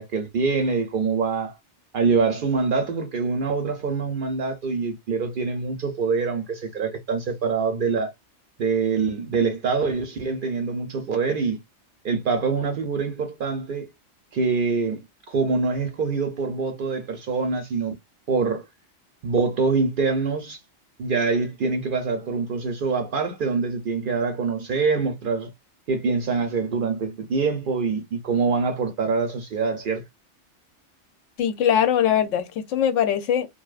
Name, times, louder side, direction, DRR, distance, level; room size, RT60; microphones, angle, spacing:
voice 1, 0.0-1.6 1.9-8.1 8.6-11.6 12.0-13.9 14.3-15.0 15.3-18.0 18.3-18.7 19.2-20.6 21.0-25.5 25.9-30.0, right 4 dB, 60° right, 0.6 m, -25 dB
voice 2, 31.4-33.5, left 9 dB, 85° left, 0.9 m, -21 dB
2.6 x 2.2 x 2.3 m
omnidirectional pair, 1.2 m